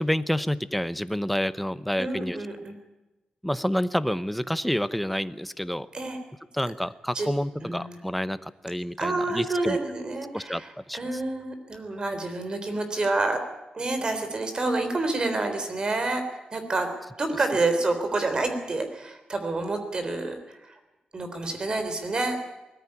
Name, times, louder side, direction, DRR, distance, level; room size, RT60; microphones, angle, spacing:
voice 1, 0.0-2.4 3.4-5.9 6.5-9.8 10.3-11.0, equal, ahead, 14 dB, 0.8 m, -28 dB
voice 2, 2.0-2.7 5.9-6.2 7.1-7.3 7.6-7.9 9.0-13.4 13.7-16.9 17.2-20.8 21.1-22.4, right 2 dB, 35° right, 7 dB, 3.5 m, -28 dB
20.5 x 14.5 x 9.7 m, 1.0 s
wide cardioid pair, 125°, 2 cm